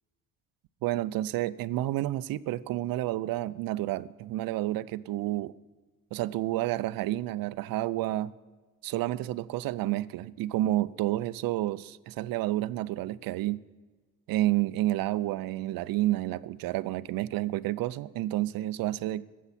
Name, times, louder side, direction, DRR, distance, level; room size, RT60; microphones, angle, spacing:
voice 1, 0.8-5.5 6.1-8.3 8.8-13.7 14.3-19.2, right 15 dB, 85° right, 0.5 m, -30 dB
20.0 x 8.3 x 4.2 m
cardioid pair, 120°, 34 cm